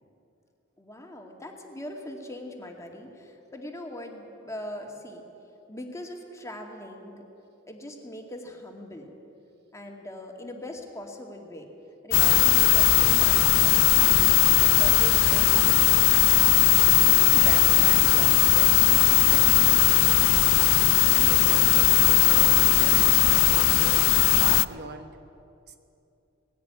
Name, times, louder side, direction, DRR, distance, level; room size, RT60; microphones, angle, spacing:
voice 1, 0.8-5.2 5.7-7.2 7.7-9.1 9.7-11.7 12.0-16.2, equal, 15° left, 2 dB, 2.3 m, -41 dB
sound 1, 12.1-24.7, left 16 dB, 70° left, 0.5 m, -19 dB
voice 2, 17.0-25.2 25.7-25.8, right 2 dB, 55° right, 7 dB, 1.1 m, -40 dB
20.0 x 16.0 x 9.7 m, 2.7 s
head